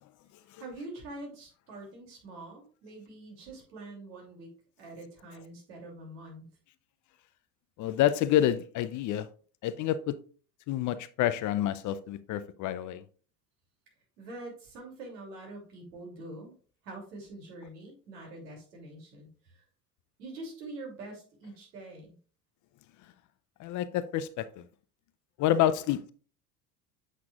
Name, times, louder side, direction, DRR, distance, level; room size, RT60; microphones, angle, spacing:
voice 1, 0.6-4.5 4.8-6.5 14.2-16.5 16.8-19.6 20.2-22.1, right 2 dB, 75° right, 2.9 m, -45 dB
voice 2, 7.8-9.3 9.6-10.1 10.7-13.0 23.6-24.5 25.4-26.1, left 12 dB, 40° left, 0.5 m, -28 dB
8.1 x 5.8 x 2.4 m
hypercardioid pair, 70°, 49 cm